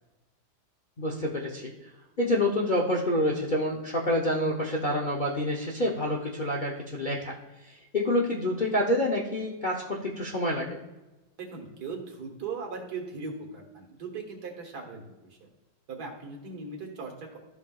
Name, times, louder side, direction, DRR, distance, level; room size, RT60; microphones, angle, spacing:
voice 1, 1.0-1.7 2.2-7.3 7.7-10.8, left 1 dB, 55° left, -2 dB, 0.5 m, -27 dB
voice 2, 11.4-15.5 15.9-17.4, right 4 dB, 60° right, 1 dB, 1.9 m, -39 dB
13.5 x 5.5 x 2.3 m, 1.1 s
omnidirectional pair, 2.0 m